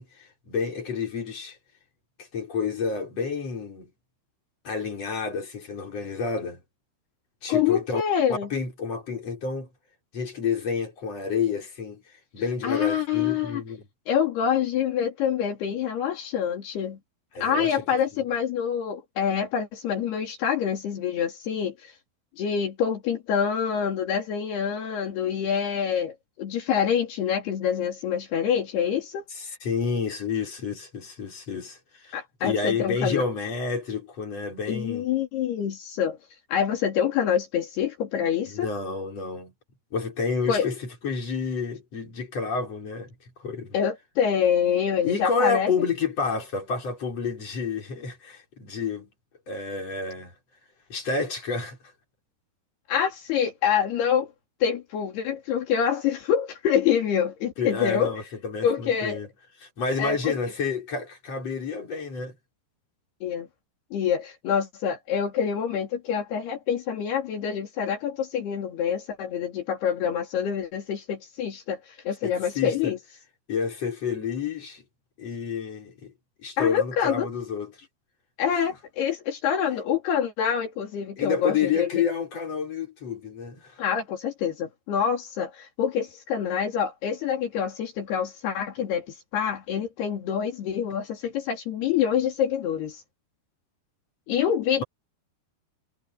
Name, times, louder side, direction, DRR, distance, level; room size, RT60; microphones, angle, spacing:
voice 1, 0.0-1.6 2.2-3.9 4.6-6.6 7.4-8.0 8.5-9.7 10.1-12.0 12.3-13.8 17.3-17.8 29.4-35.1 38.5-39.5 39.9-43.8 45.0-49.1 49.5-50.3 50.9-51.8 57.6-59.3 59.6-62.4 72.2-72.9 73.5-74.8 75.2-76.1 76.4-77.7 81.2-83.8, left 5 dB, 40° left, 7.1 m, -29 dB
voice 2, 7.5-8.5 12.6-13.6 14.1-17.0 17.4-21.9 22.4-29.2 32.1-33.2 34.7-36.2 36.5-38.7 40.5-40.7 43.7-45.7 52.9-54.3 54.6-58.1 58.6-59.2 60.0-60.3 63.2-63.5 63.9-73.0 76.6-77.3 78.4-81.9 83.8-93.0 94.3-94.8, left 8 dB, 75° left, 4.7 m, -26 dB
omnidirectional pair, 4.7 m